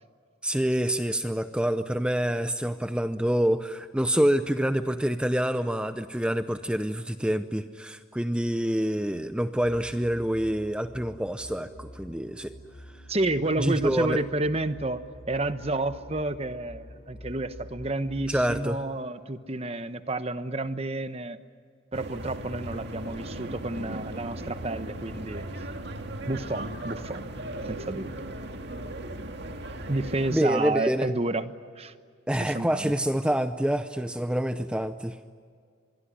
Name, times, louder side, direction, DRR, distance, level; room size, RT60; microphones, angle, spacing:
voice 1, 0.4-12.5 13.6-14.2 18.3-18.8 30.3-31.1 32.3-35.2, equal, 5° right, 10 dB, 0.6 m, -27 dB
sound 1, 9.6-18.7, equal, 45° left, 2.7 m, -47 dB
voice 2, 13.1-21.4 21.9-25.4 26.3-27.2 27.6-28.3 29.9-31.9 32.4-32.9, right 2 dB, 30° right, 11 dB, 1.0 m, -30 dB
sound 2, 21.9-30.4, right 1 dB, 55° right, 2.1 m, -37 dB
25.5 x 22.0 x 9.9 m, 2.1 s
head